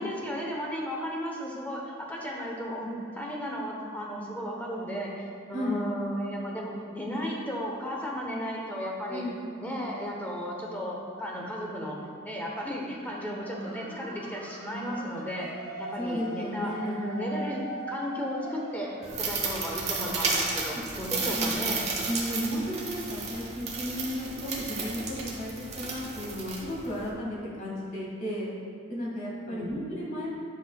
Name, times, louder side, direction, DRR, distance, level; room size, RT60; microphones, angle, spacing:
voice 1, 0.0-9.3 9.6-15.5 15.8-21.8 29.5-29.8, equal, 10° left, -2 dB, 0.8 m, -34 dB
voice 2, 9.1-9.5 16.0-17.0 20.7-21.6 22.0-28.5 28.9-30.3, equal, 40° left, -5 dB, 1.5 m, -34 dB
sound 1, 13.5-20.7, right 1 dB, 90° right, 1.4 m, -42 dB
sound 2, 19.0-27.1, right 4 dB, 30° right, 1.0 m, -33 dB
10.5 x 5.4 x 2.3 m, 2.2 s
head